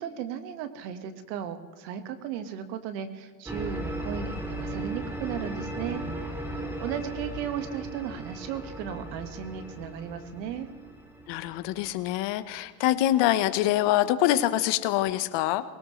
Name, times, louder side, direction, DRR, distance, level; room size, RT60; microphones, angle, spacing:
voice 1, 0.0-6.0 6.5-10.7, right 8 dB, 80° right, 8 dB, 1.6 m, -36 dB
sound 1, 3.5-12.3, right 1 dB, 5° right, 2.3 m, -37 dB
voice 2, 11.3-15.6, left 14 dB, 60° left, 12 dB, 1.1 m, -25 dB
19.5 x 18.5 x 3.2 m, 1.5 s
hypercardioid pair, 85°, 50 cm